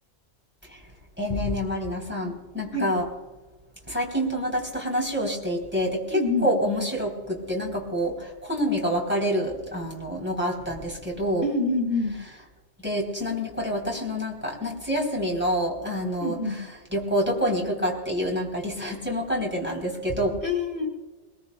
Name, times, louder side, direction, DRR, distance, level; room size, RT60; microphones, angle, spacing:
voice 1, 1.2-3.1 3.9-11.5 12.8-20.4, equal, 10° right, -2 dB, 3.6 m, -27 dB
voice 2, 6.1-6.5 11.4-12.2 16.2-16.6 20.4-20.9, left 3 dB, 60° left, -2 dB, 5.2 m, -26 dB
21.0 x 20.5 x 2.3 m, 1.2 s
omnidirectional pair, 1.2 m